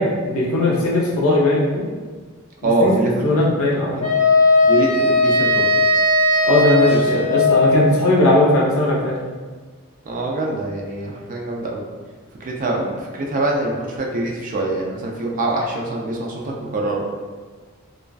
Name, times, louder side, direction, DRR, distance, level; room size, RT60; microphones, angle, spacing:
voice 1, 0.0-1.8 2.6-2.9 3.2-4.1 6.4-9.1, left 1 dB, 75° left, -3 dB, 0.6 m, -18 dB
voice 2, 2.6-3.3 3.9-4.0 4.6-5.7 7.1-7.2 10.1-11.8 12.4-17.0, right 2 dB, 40° right, -1 dB, 0.4 m, -24 dB
Wind instrument woodwind instrument, 4.0-8.1, left 2 dB, 35° left, 0.9 m, -17 dB
2.4 x 2.3 x 2.3 m, 1.4 s
head